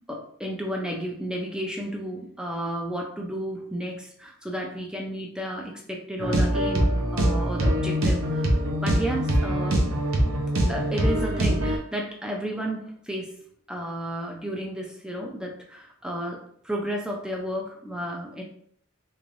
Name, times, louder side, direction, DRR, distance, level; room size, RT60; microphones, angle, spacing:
voice 1, 0.1-9.9 10.7-13.3 13.7-18.4, equal, 5° right, 0 dB, 0.5 m, -32 dB
sound 1, 6.2-11.8, right 1 dB, 85° right, 0.8 m, -23 dB
3.5 x 3.2 x 2.5 m, 0.65 s
head